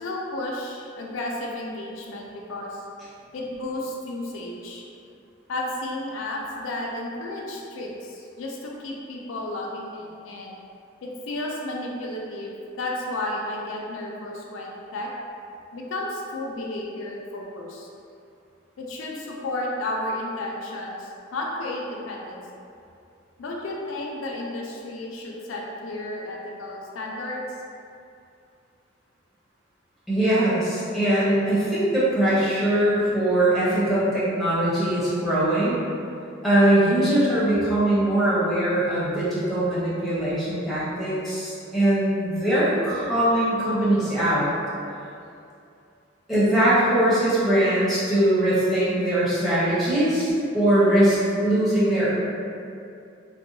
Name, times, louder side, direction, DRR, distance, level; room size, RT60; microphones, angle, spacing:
voice 1, 0.0-2.8 3.3-4.8 5.5-10.6 11.0-15.1 15.7-17.9 18.8-22.4 23.4-27.4, left 1 dB, 80° left, -2 dB, 0.4 m, -32 dB
voice 2, 30.1-35.8 36.4-44.5 46.3-52.1, right 1 dB, ahead, -11 dB, 0.7 m, -21 dB
2.6 x 2.2 x 2.6 m, 2.6 s
head